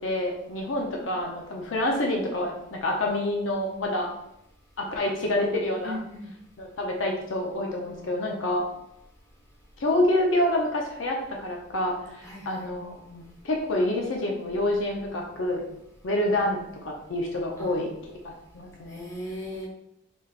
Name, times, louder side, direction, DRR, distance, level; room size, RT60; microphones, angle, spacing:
voice 1, 0.0-4.1 4.8-6.0 6.6-8.7 9.8-15.6 16.0-16.6 16.8-17.9 18.2-19.0, left 1 dB, 75° left, 0 dB, 0.6 m, -27 dB
voice 2, 5.8-6.3 12.2-12.6 17.6-17.8 18.9-19.7, left 1 dB, 15° left, -3 dB, 1.0 m, -37 dB
4.1 x 3.3 x 2.4 m, 0.81 s
head